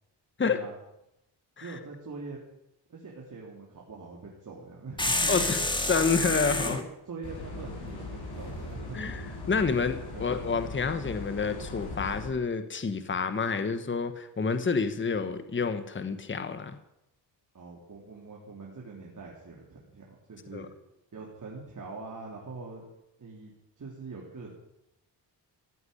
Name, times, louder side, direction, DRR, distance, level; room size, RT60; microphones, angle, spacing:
voice 1, 1.6-2.4 2.9-5.6 6.6-9.1 10.1-10.3 17.5-20.7 21.1-22.8 23.2-24.5, right 4 dB, 45° right, -3 dB, 3.6 m, -43 dB
sound 1, 5.0-6.8, left 1 dB, 10° left, 1.7 m, -28 dB
voice 2, 5.9-6.8 8.9-16.8 20.5-20.7, left 5 dB, 25° left, 10 dB, 1.2 m, -29 dB
sound 2, 7.2-12.3, left 2 dB, 55° left, 7.7 m, -39 dB
15.5 x 8.1 x 9.9 m, 0.87 s
cardioid pair, 85°, 44 cm